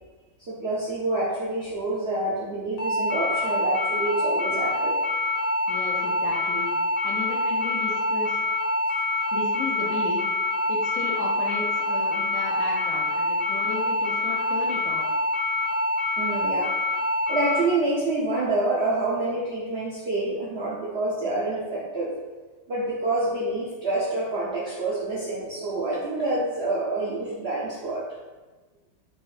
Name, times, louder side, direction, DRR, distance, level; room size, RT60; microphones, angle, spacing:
voice 1, 0.4-5.0 16.2-16.7 17.3-22.2 22.7-28.1, right 2 dB, 70° right, -5 dB, 0.6 m, -27 dB
sound 1, 2.8-17.6, left 1 dB, 60° left, 1.6 m, -26 dB
voice 2, 5.7-6.7 7.0-8.4 9.3-10.3 10.7-15.1, left 3 dB, 80° left, -2 dB, 0.7 m, -34 dB
5.0 x 4.0 x 2.5 m, 1.3 s
omnidirectional pair, 2.1 m